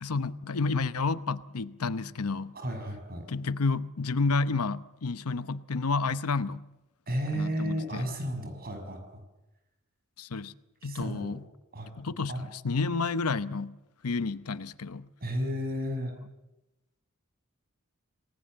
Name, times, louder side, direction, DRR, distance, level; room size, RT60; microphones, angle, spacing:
voice 1, 0.0-2.6 3.3-6.6 7.3-8.1 10.2-10.5 10.8-11.4 12.0-13.8 14.0-15.1, left 4 dB, 85° left, 0.9 m, -30 dB
voice 2, 2.5-3.3 7.1-9.0 10.8-11.3 11.7-11.9 12.3-12.5 15.2-16.1, equal, 45° right, 6.3 m, -33 dB
27.5 x 19.5 x 7.8 m
head